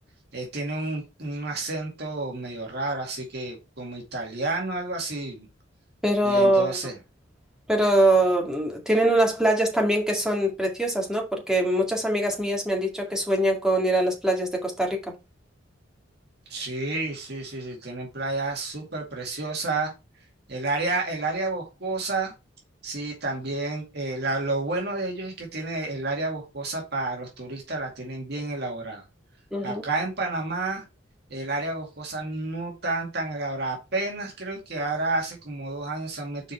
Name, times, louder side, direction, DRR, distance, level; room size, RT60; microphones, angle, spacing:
voice 1, 0.3-5.5 6.2-7.0 16.5-19.9 20.5-22.3 22.8-29.0 29.6-30.8 31.3-36.5, right 2 dB, 55° right, 2.2 m, -30 dB
voice 2, 6.0-6.8 7.7-15.0 29.5-29.8, right 1 dB, 5° right, 2.1 m, -23 dB
6.6 x 4.8 x 4.5 m
head